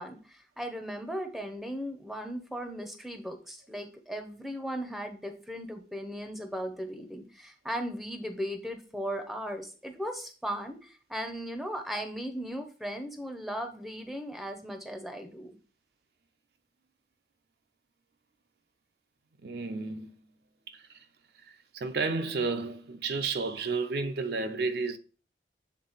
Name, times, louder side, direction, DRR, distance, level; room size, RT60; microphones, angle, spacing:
voice 1, 0.0-15.6, equal, ahead, 0.7 m, -37 dB
voice 2, 19.4-20.2 20.7-21.1 21.4-25.0, right 4 dB, 65° right, 0.5 m, -32 dB
7.3 x 3.8 x 4.0 m
head